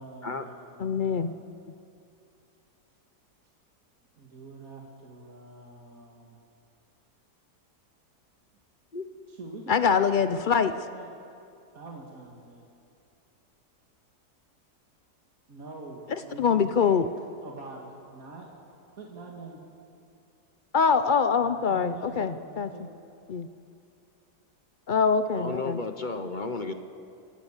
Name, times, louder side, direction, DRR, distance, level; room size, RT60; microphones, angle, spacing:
voice 1, 0.0-1.4 4.2-6.4 9.3-11.1 11.7-12.6 15.5-17.0 17.4-18.5 18.9-19.6 21.4-22.9, right 3 dB, 60° right, -1 dB, 2.4 m, -44 dB
voice 2, 0.8-1.3 9.7-10.7 16.4-17.1 20.7-22.7 23.3-23.5 24.9-25.8, left 6 dB, 80° left, 11 dB, 0.4 m, -24 dB
voice 3, 25.4-26.7, left 3 dB, 35° left, 8 dB, 0.9 m, -33 dB
28.0 x 15.5 x 7.3 m, 2.6 s
omnidirectional pair, 1.7 m